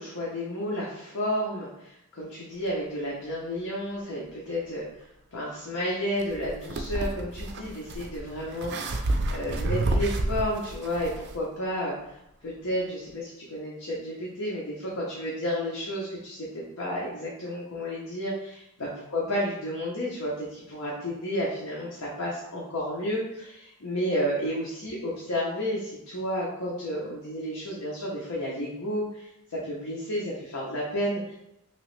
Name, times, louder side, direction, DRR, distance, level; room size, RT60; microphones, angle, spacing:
voice 1, 0.0-4.8 5.3-12.0 12.4-31.3, equal, 85° left, -5 dB, 0.7 m, -31 dB
sound 1, 6.2-11.4, right 2 dB, 50° right, 0.4 m, -30 dB
3.0 x 2.9 x 3.1 m, 0.83 s
head